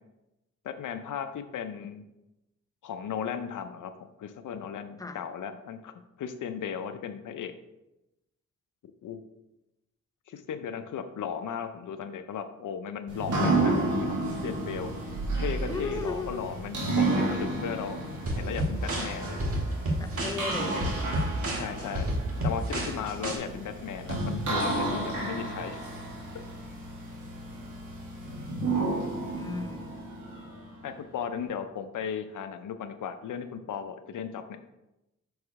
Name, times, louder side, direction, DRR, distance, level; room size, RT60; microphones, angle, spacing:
voice 1, 0.6-2.0 2.8-3.9 4.2-7.5 9.0-9.2 10.3-14.9 15.4-18.0 18.4-19.4 21.5-22.1 22.4-25.8 30.8-34.7, left 7 dB, 85° left, 8 dB, 0.6 m, -36 dB
sound 1, 13.1-30.9, right 2 dB, 90° right, 1.8 m, -32 dB
voice 2, 15.7-16.4 20.0-21.1 29.0-29.9, left 3 dB, 10° left, 6 dB, 0.7 m, -36 dB
sound 2, 18.3-23.4, right 1 dB, 50° right, 1.7 m, -30 dB
6.2 x 4.8 x 4.7 m, 0.94 s
cardioid pair, 95°, 30 cm